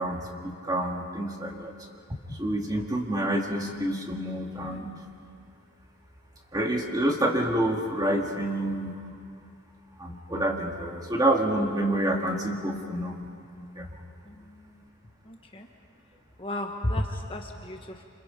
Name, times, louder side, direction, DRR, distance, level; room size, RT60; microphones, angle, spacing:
voice 1, 0.0-1.7 2.3-4.9 6.5-9.0 10.0-13.2 13.7-13.9, right 1 dB, 15° right, 1 dB, 2.0 m, -28 dB
voice 2, 14.2-14.8 15.2-15.7 16.4-18.0, left 1 dB, 25° left, 3 dB, 1.1 m, -33 dB
28.0 x 27.5 x 5.2 m, 2.3 s
head